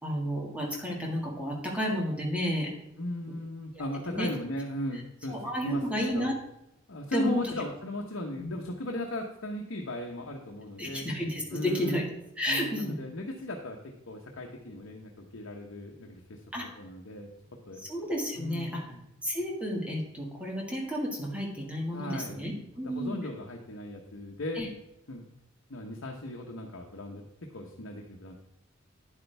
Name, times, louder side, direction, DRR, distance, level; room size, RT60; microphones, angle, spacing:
voice 1, 0.0-2.7 3.7-4.3 5.3-6.3 7.1-7.4 8.4-8.5 10.8-12.1 12.4-13.0 16.5-16.7 17.8-18.8 19.2-23.2 24.6-24.7, equal, 5° right, -2 dB, 1.9 m, -31 dB
voice 2, 3.0-5.4 5.6-6.3 6.9-11.1 11.5-12.0 12.5-17.3 17.7-17.8 18.4-19.0 21.9-22.4 22.8-24.6 25.1-25.3 25.7-28.3, left 1 dB, 70° left, 0 dB, 1.0 m, -37 dB
9.9 x 8.5 x 3.4 m, 0.85 s
head